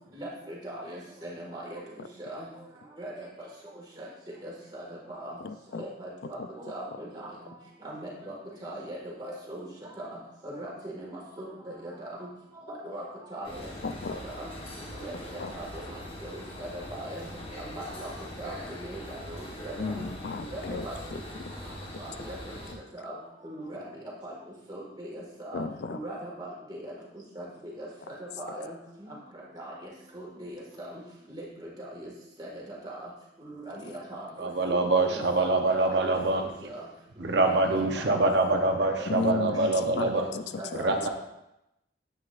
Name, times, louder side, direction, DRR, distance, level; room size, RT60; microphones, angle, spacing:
voice 1, 0.1-1.8 2.2-2.5 3.0-3.3 4.0-4.1 4.4-5.3 5.8-6.4 6.7-7.3 7.8-8.3 8.6-9.7 10.0-10.1 10.4-11.5 11.8-12.2 12.7-13.0 13.3-13.7 14.2-14.5 14.9-15.1 15.5-17.3 17.6-18.1 18.4-18.5 18.8-20.0 20.5-21.0 22.0-22.4 22.9-23.2 23.4-23.8 24.2-24.3 24.7-25.6 25.9-26.9 27.4-28.8 29.6-29.7 30.1-30.9 31.3-32.1 32.4-33.1 33.4-36.5 36.7-36.8 37.2-38.6 39.7-40.1 40.6-41.1, right 1 dB, 20° right, -4 dB, 1.9 m, -40 dB
voice 2, 5.4-5.8 6.4-6.5 13.8-14.2 15.4-15.5 19.8-21.5 22.7-22.8 25.5-26.0 39.1-41.0, left 4 dB, 65° left, 10 dB, 0.4 m, -34 dB
sound 1, 13.4-22.7, left 1 dB, 30° left, 1.3 m, -42 dB
voice 3, 34.4-36.5 37.2-40.2 40.8-41.1, right 2 dB, 65° right, 4 dB, 0.7 m, -25 dB
9.5 x 7.8 x 2.5 m, 0.88 s
head